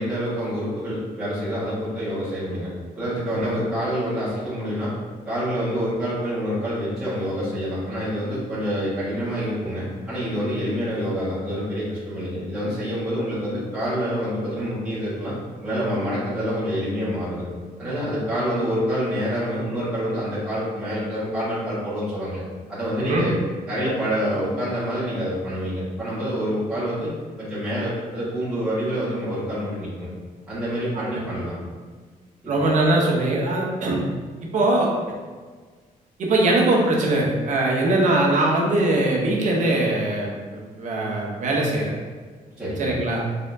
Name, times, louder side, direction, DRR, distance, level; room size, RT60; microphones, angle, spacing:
voice 1, 0.0-4.9 5.2-15.3 15.6-17.4 17.8-22.4 22.7-23.4 23.7-27.1 27.4-30.1 30.5-31.5 32.4-32.6 42.6-42.8, equal, 5° right, -14 dB, 1.5 m, -27 dB
voice 2, 32.5-34.0 34.5-34.9 36.2-41.9 42.8-43.2, right 2 dB, 55° right, -2 dB, 0.8 m, -21 dB
4.1 x 3.7 x 2.7 m, 1.5 s
wide cardioid pair, 175°, 15 cm